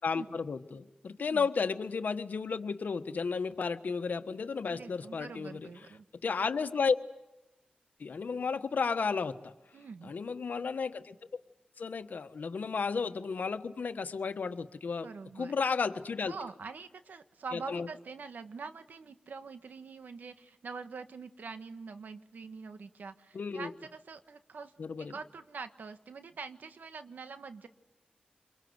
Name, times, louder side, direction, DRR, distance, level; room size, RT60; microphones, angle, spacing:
voice 1, 0.0-5.7 6.2-7.0 8.0-9.5 10.0-11.1 11.8-15.1 15.4-16.3 17.5-17.9 23.3-23.7 24.8-25.1, left 5 dB, 75° left, 10 dB, 1.3 m, -33 dB
voice 2, 1.2-1.5 4.7-6.0 9.7-10.1 15.0-15.5 16.3-24.7 25.0-27.7, right 4 dB, 85° right, 9 dB, 1.4 m, -45 dB
27.5 x 23.0 x 8.0 m, 0.97 s
cardioid pair, 55°, 3 cm